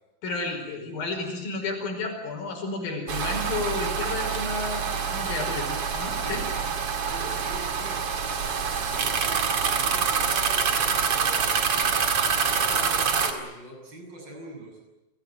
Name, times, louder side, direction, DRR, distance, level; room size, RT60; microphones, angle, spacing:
voice 1, 0.2-4.8 5.1-6.5, left 3 dB, 85° left, 1 dB, 7.0 m, -32 dB
sound 1, 3.1-13.3, right 6 dB, 45° right, 2.8 m, -26 dB
voice 2, 6.2-6.6 7.0-8.1 8.9-9.5 9.7-11.5 12.5-14.8, right 1 dB, 30° right, 1 dB, 8.6 m, -43 dB
29.5 x 18.5 x 9.2 m, 1.0 s
omnidirectional pair, 4.0 m